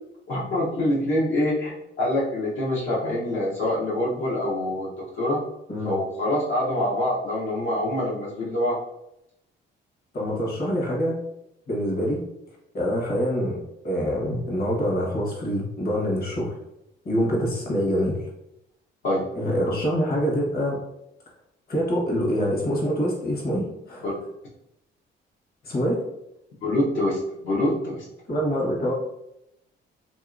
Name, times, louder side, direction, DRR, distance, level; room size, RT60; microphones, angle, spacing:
voice 1, 0.3-5.4 5.8-8.8 19.0-19.2 24.0-24.1 26.6-28.0, left 1 dB, 70° left, -7 dB, 0.9 m, -25 dB
voice 2, 10.1-11.2 11.7-12.2 12.7-13.6 13.8-16.5 17.0-18.2 19.3-20.8 21.7-24.0 25.6-26.0 28.3-28.9, equal, 50° left, -2 dB, 1.2 m, -25 dB
2.8 x 2.8 x 2.5 m, 0.81 s
cardioid pair, 90°, 20 cm